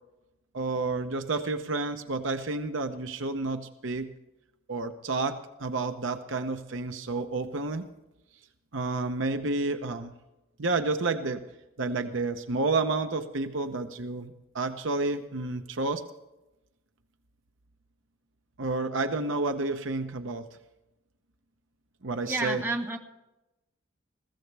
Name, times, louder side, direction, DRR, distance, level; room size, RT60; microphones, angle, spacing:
voice 1, 0.5-4.1 4.7-7.8 8.7-10.1 10.6-11.4 11.8-16.0 18.6-20.5 22.0-22.6, right 3 dB, 65° right, 8 dB, 0.9 m, -30 dB
voice 2, 22.2-23.0, right 2 dB, 10° right, 2 dB, 1.4 m, -30 dB
20.5 x 16.0 x 3.4 m, 0.95 s
head